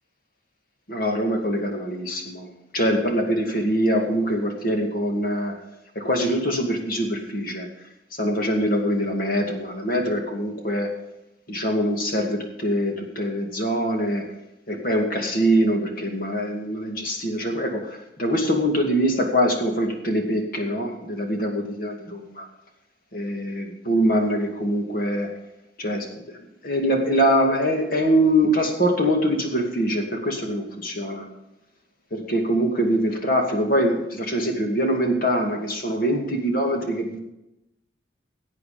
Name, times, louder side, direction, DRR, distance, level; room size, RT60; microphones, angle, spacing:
voice 1, 0.9-5.5 5.9-7.7 8.2-10.9 11.5-14.3 14.7-22.5 23.1-25.3 25.8-26.4 26.6-31.3 32.1-37.2, equal, 50° left, 2 dB, 2.4 m, -23 dB
17.0 x 8.4 x 5.1 m, 0.88 s
head